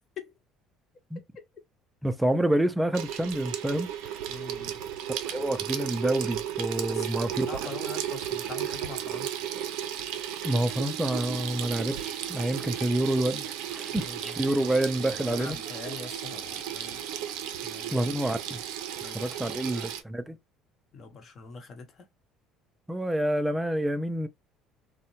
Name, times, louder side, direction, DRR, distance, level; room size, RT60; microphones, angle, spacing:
voice 1, 2.0-3.9 5.2-7.5 10.4-15.6 17.9-18.6 19.1-20.4 22.9-24.3, right 1 dB, 10° right, 0.4 m, -28 dB
Water tap faucet / Sink (filling or washing), 2.9-20.0, right 10 dB, 75° right, 0.4 m, -34 dB
voice 2, 4.3-4.8 6.6-9.4 13.9-14.4 15.3-17.1 17.6-18.1 19.0-19.9 20.9-22.1, left 5 dB, 45° left, 0.9 m, -44 dB
2.6 x 2.1 x 2.9 m
supercardioid pair, 75°, 0 cm